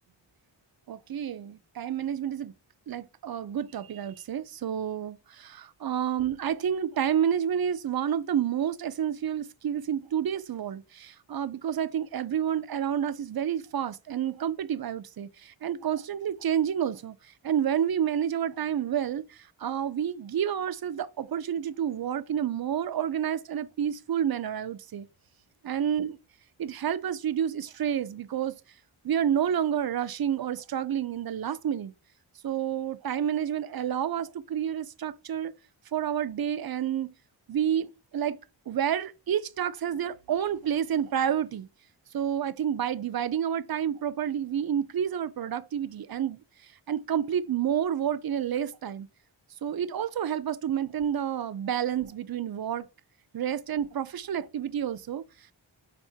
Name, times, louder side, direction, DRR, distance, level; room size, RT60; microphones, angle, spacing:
voice 1, 0.9-2.5 2.9-17.1 17.4-25.1 25.6-26.2 26.6-28.6 29.0-31.9 32.4-35.5 35.9-37.1 37.5-37.9 38.1-38.4 38.7-41.7 42.1-46.4 46.9-49.1 49.6-52.9 53.3-55.2, right 9 dB, 55° right, 0.5 m, -29 dB
5.1 x 3.5 x 2.7 m
cardioid pair, 40°, 46 cm